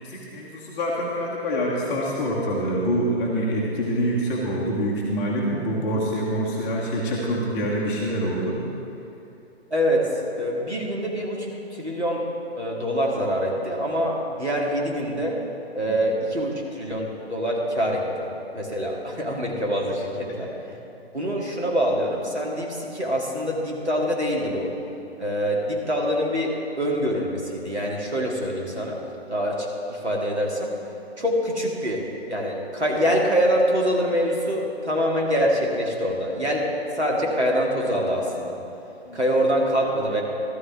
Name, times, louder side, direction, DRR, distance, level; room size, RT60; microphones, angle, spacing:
voice 1, 0.0-8.6 15.9-16.0 39.1-39.2, equal, 10° left, -5 dB, 0.6 m, -26 dB
voice 2, 9.7-12.3 12.5-15.4 15.7-18.3 18.5-20.5 21.1-24.7 25.2-29.0 29.3-30.7 31.2-36.7 36.9-38.6 39.1-40.2, equal, 90° right, -2 dB, 2.3 m, -25 dB
13.0 x 12.5 x 3.6 m, 2.8 s
figure-of-eight pair, 135°, 33 cm